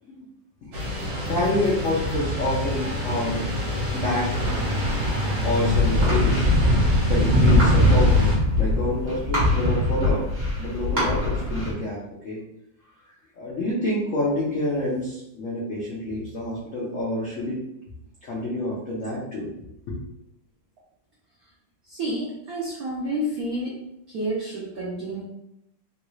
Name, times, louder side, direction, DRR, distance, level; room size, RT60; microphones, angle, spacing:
sound 1, 0.7-8.4, left 1 dB, 60° right, 1.5 m, -27 dB
voice 1, 1.3-3.4 3.9-4.3 5.4-6.5 7.0-8.3 8.6-10.3 10.6-12.4 13.4-17.6 18.2-19.5 19.9-20.0, left 1 dB, 75° left, -5 dB, 0.7 m, -27 dB
sound 2, 4.3-11.7, left 1 dB, 35° right, 1.3 m, -21 dB
voice 2, 21.9-23.8 24.1-25.2, right 1 dB, 80° right, -4 dB, 0.8 m, -29 dB
3.7 x 2.3 x 3.0 m, 0.81 s
omnidirectional pair, 2.3 m